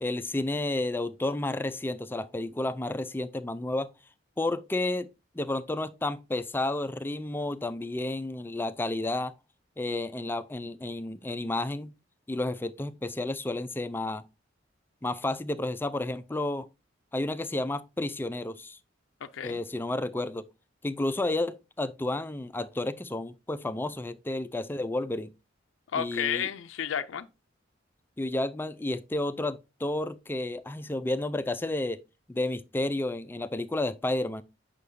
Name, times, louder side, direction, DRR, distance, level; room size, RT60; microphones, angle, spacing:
voice 1, 0.0-3.9 4.4-5.1 5.3-9.3 9.8-11.9 12.3-14.2 15.0-16.7 17.1-18.8 19.4-20.4 20.8-25.3 25.9-26.5 28.2-32.0 32.3-34.4, left 2 dB, 10° left, 0.3 m, -31 dB
voice 2, 19.2-19.6 25.9-27.3, left 8 dB, 85° left, 0.4 m, -31 dB
8.3 x 5.7 x 2.6 m
head